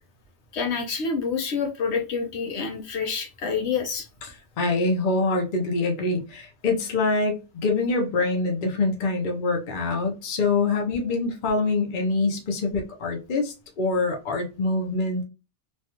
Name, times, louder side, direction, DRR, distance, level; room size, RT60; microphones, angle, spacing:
voice 1, 0.5-4.1, left 5 dB, 70° left, 1.1 m, -27 dB
voice 2, 4.2-15.2, left 3 dB, 50° left, 0.8 m, -25 dB
3.2 x 2.3 x 2.8 m
omnidirectional pair, 1.2 m